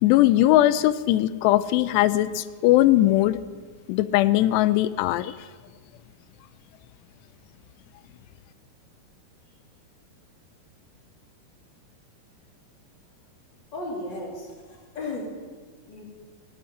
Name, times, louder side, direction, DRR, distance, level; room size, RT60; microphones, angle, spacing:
voice 1, 0.0-3.4 3.9-5.3, left 15 dB, 85° left, 15 dB, 2.7 m, -20 dB
voice 2, 13.7-15.3 15.9-16.0, left 2 dB, 30° left, -1 dB, 2.9 m, -35 dB
11.5 x 11.5 x 9.8 m, 1.5 s
omnidirectional pair, 4.8 m